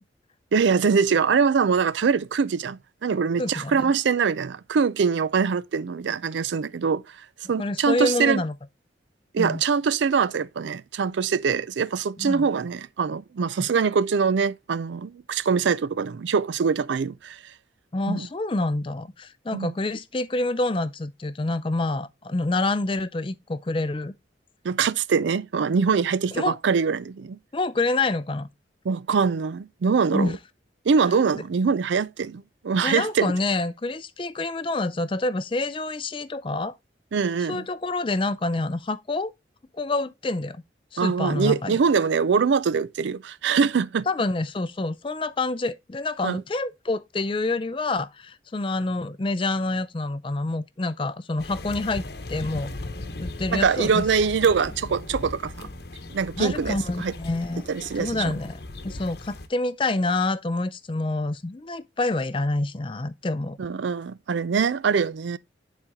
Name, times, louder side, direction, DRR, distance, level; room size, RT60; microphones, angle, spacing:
voice 1, 0.5-7.0 7.5-8.4 9.3-17.5 18.1-18.3 19.5-19.7 24.6-27.4 28.9-30.4 30.9-33.3 37.1-37.7 41.0-44.1 46.2-46.4 53.5-55.7 56.1-57.1 57.7-58.3 63.6-65.4, right 5 dB, 80° right, 0.4 m, -23 dB
voice 2, 3.4-3.9 7.6-8.5 9.4-9.6 12.2-12.5 13.6-13.7 17.9-24.1 26.3-26.6 27.5-28.5 30.1-30.4 31.3-31.4 32.8-36.7 37.5-39.3 39.7-40.6 40.9-41.8 44.1-52.7 53.2-54.0 56.4-57.7 58.0-63.6, left 2 dB, 30° left, 0.4 m, -27 dB
sound 1, 51.4-59.5, left 2 dB, 60° left, 0.9 m, -37 dB
9.8 x 4.3 x 3.5 m
head